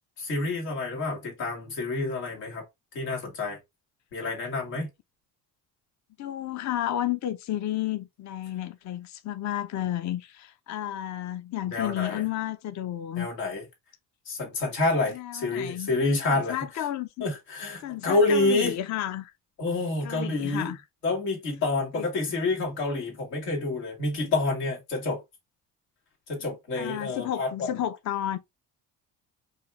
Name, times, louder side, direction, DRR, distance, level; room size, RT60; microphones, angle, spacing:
voice 1, 0.2-2.6 2.9-3.6 4.1-4.9 11.7-12.2 13.2-13.6 14.3-16.6 17.2-18.8 19.6-20.7 21.0-25.2 26.3-27.7, left 2 dB, 85° left, 1.7 m, -28 dB
voice 2, 6.2-13.3 15.1-16.0 16.3-17.3 17.8-19.3 20.0-20.8 21.9-22.1 26.7-28.4, left 12 dB, 40° left, 0.6 m, -32 dB
4.9 x 2.4 x 3.2 m
hypercardioid pair, 50°, 47 cm